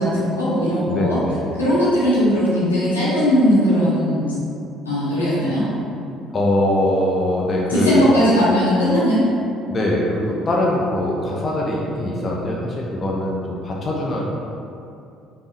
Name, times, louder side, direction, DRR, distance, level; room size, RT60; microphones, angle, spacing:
voice 1, 0.0-1.2 1.6-4.3 4.8-5.7 7.7-9.3, equal, 80° left, -10 dB, 1.2 m, -18 dB
voice 2, 0.9-1.5 6.3-8.1 9.7-14.2, left 1 dB, 30° left, -3 dB, 0.7 m, -22 dB
5.2 x 3.4 x 3.0 m, 2.6 s
figure-of-eight pair, 50°, 0 cm